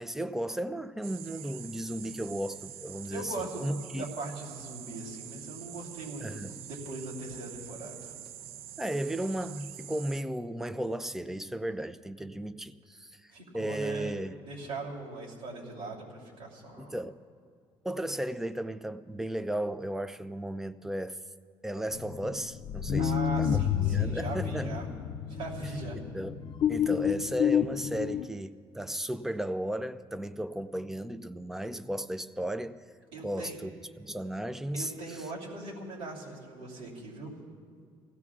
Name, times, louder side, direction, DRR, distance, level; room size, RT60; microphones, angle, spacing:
voice 1, 0.0-4.0 6.2-6.5 8.8-14.4 16.8-17.1 17.8-21.2 21.6-24.8 26.1-26.4 26.7-32.8 33.2-33.7 34.0-35.2, right 1 dB, 5° right, 0.4 m, -35 dB
sound 1, 1.0-10.2, right 11 dB, 90° right, 0.4 m, -46 dB
voice 2, 3.1-8.1 13.3-14.1 14.5-16.9 23.0-24.9 25.3-26.0 33.1-33.6 34.7-37.3, right 2 dB, 75° right, 3.1 m, -40 dB
sound 2, 21.9-28.3, left 8 dB, 50° left, 0.5 m, -30 dB
29.5 x 16.5 x 2.4 m
cardioid pair, 145°, 10 cm